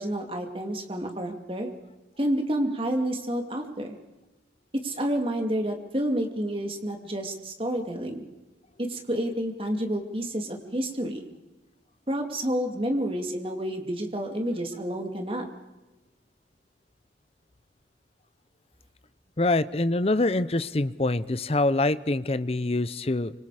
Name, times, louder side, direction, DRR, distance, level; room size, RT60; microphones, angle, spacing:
voice 1, 0.0-1.7 2.2-4.0 4.7-8.3 8.8-11.3 12.1-15.5, right 1 dB, 30° right, 4 dB, 2.5 m, -29 dB
voice 2, 19.4-23.3, left 2 dB, 35° left, 15 dB, 0.7 m, -25 dB
25.5 x 25.0 x 5.0 m, 1.1 s
head